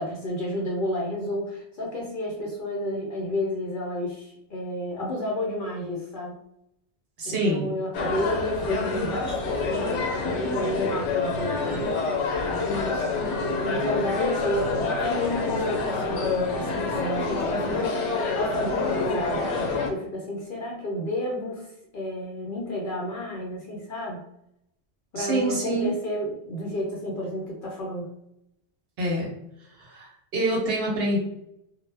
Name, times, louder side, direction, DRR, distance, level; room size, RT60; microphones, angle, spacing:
voice 1, 0.0-6.4 7.2-11.9 12.6-19.6 19.9-21.7 21.9-24.2 25.1-28.1, left 1 dB, 55° left, -2 dB, 0.6 m, -31 dB
voice 2, 7.2-7.7 25.2-25.9 29.0-29.3 29.8-31.2, right 1 dB, 60° right, -1 dB, 0.9 m, -26 dB
sound 1, 7.9-19.9, left 3 dB, 85° left, 0.9 m, -27 dB
2.1 x 2.0 x 3.2 m, 0.79 s
omnidirectional pair, 1.2 m